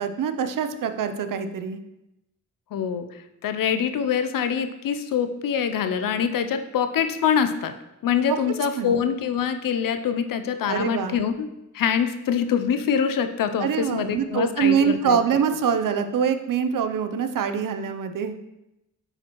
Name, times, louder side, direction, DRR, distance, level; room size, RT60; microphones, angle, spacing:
voice 1, 0.0-1.8 8.8-9.0 10.6-11.2 13.6-18.4, right 7 dB, 80° right, 9 dB, 0.6 m, -24 dB
voice 2, 2.7-3.1 3.4-7.7 8.0-11.5 11.7-15.2, left 7 dB, 90° left, 9 dB, 0.6 m, -24 dB
8.9 x 4.3 x 3.0 m, 0.91 s
cardioid pair, 70°, 32 cm